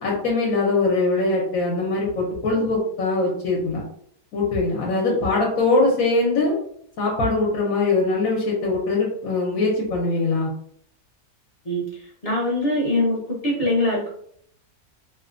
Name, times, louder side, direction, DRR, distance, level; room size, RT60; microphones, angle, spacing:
voice 1, 0.0-3.8 4.3-6.5 7.0-10.5, left 3 dB, 65° left, -2 dB, 1.1 m, -22 dB
voice 2, 12.2-14.1, left 1 dB, 35° left, -6 dB, 0.6 m, -22 dB
2.9 x 2.1 x 2.5 m, 0.65 s
omnidirectional pair, 1.6 m